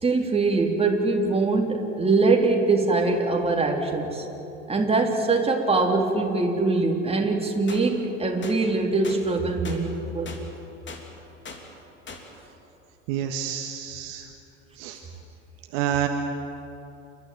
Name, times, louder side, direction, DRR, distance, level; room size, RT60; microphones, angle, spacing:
voice 1, 0.0-4.2 4.7-10.3, right 3 dB, 15° right, 1 dB, 3.4 m, -23 dB
sound 1, 7.7-7.8 8.4-8.6 9.0-9.2 9.6-9.8 10.3-10.4 10.9-11.0 11.4-11.6 12.1-12.2, left 4 dB, 30° left, 3.1 m, -39 dB
voice 2, 13.1-14.3 14.8-15.0 15.7-16.1, right 10 dB, 55° right, 5 dB, 1.6 m, -28 dB
29.5 x 12.5 x 9.3 m, 2.9 s
figure-of-eight pair, 75°, 39 cm